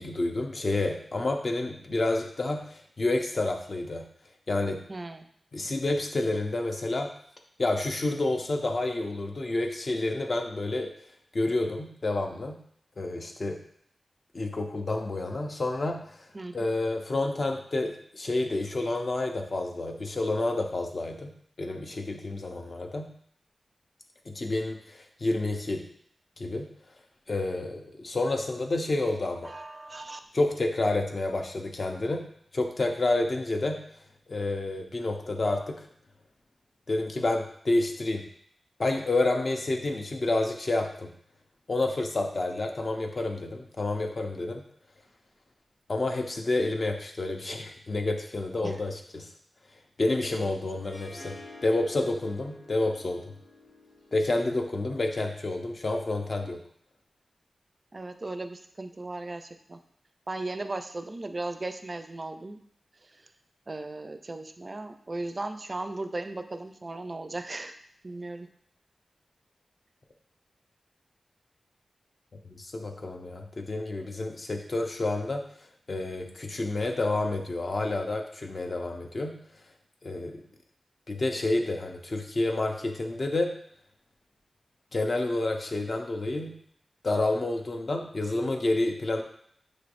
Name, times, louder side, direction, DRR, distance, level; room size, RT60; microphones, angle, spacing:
voice 1, 0.0-4.1 4.5-4.8 5.5-7.1 7.6-10.9 11.3-12.6 13.0-13.6 14.3-16.0 16.5-23.1 24.3-25.8 26.4-26.7 27.3-29.5 30.3-32.2 32.5-33.8 34.3-35.9 36.9-38.2 38.8-41.1 41.7-44.6 45.9-49.3 50.0-51.4 51.6-53.2 54.1-56.6 72.5-75.4 75.9-79.4 80.0-80.4 81.1-83.5 84.9-86.5 87.0-89.2, left 2 dB, 50° left, 3 dB, 0.6 m, -29 dB
voice 2, 4.9-5.3 5.6-5.7 16.3-16.7 18.8-18.9 29.4-30.2 48.6-48.8 50.4-50.6 57.9-59.8 60.3-62.6 63.0-63.3 63.7-67.8 68.0-68.5, right 2 dB, 35° right, 8 dB, 0.4 m, -37 dB
Harp, 50.8-55.9, left 2 dB, 65° left, 1.3 m, -50 dB
6.1 x 3.1 x 2.5 m, 0.64 s
wide cardioid pair, 85°, 0 cm